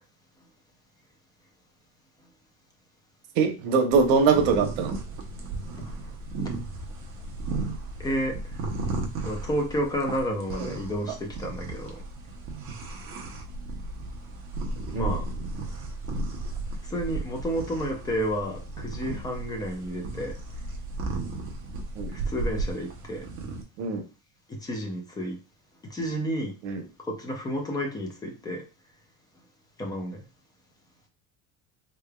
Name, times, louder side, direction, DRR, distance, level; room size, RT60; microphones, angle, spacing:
voice 1, 3.4-4.9 14.9-15.2 21.9-22.1 23.8-24.0 26.6-26.8, right 5 dB, 85° right, 0.9 m, -22 dB
sound 1, 3.9-23.6, right 2 dB, 35° right, 0.7 m, -35 dB
voice 2, 8.0-8.4 9.2-12.0 14.9-15.3 16.9-20.3 22.1-23.3 24.5-25.4 25.9-26.5 27.1-28.7 29.8-30.2, equal, 10° left, 0.4 m, -31 dB
3.6 x 3.3 x 2.2 m
cardioid pair, 170°, 39 cm